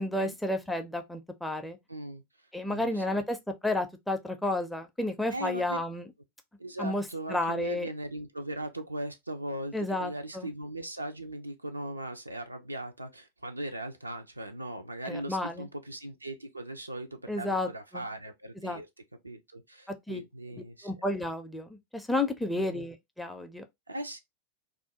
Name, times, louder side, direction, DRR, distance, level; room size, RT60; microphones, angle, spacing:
voice 1, 0.0-1.8 2.5-3.4 3.6-6.1 6.8-7.9 9.7-10.5 15.1-15.7 17.3-18.0 18.6-18.8 20.1-20.2 20.8-23.6, left 2 dB, 5° left, 0.4 m, -31 dB
voice 2, 1.9-2.2 2.7-3.2 5.3-5.8 6.6-18.9 19.2-20.9 22.5-22.8 23.9-24.2, right 1 dB, 85° right, 0.4 m, -39 dB
2.4 x 2.2 x 2.6 m
figure-of-eight pair, 90°, 0 cm